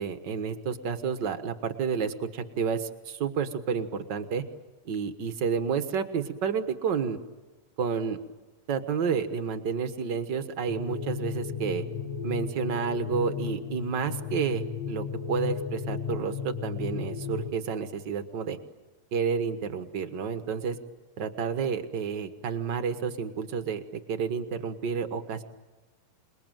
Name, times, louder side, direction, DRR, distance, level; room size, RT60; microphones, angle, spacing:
voice 1, 0.0-4.4 4.8-7.2 7.8-8.2 8.7-11.8 12.2-18.6 19.1-20.8 21.2-25.4, right 6 dB, 60° right, 9 dB, 1.1 m, -30 dB
sound 1, 10.7-17.5, left 7 dB, 55° left, 2.4 m, -34 dB
28.0 x 21.0 x 9.1 m, 1.3 s
omnidirectional pair, 4.0 m